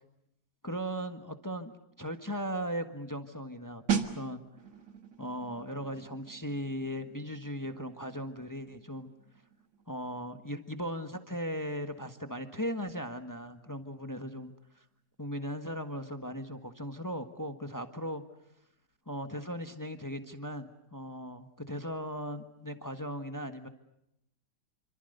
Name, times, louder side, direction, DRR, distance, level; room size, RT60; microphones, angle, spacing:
voice 1, 0.6-1.7 2.0-4.4 5.2-9.1 9.9-14.8 15.2-18.2 19.1-23.7, equal, 10° left, 8 dB, 1.4 m, -38 dB
sound 1, 3.9-14.4 14.7-14.9, right 7 dB, 55° right, 2.1 m, -40 dB
27.5 x 26.0 x 6.7 m, 0.80 s
omnidirectional pair, 1.7 m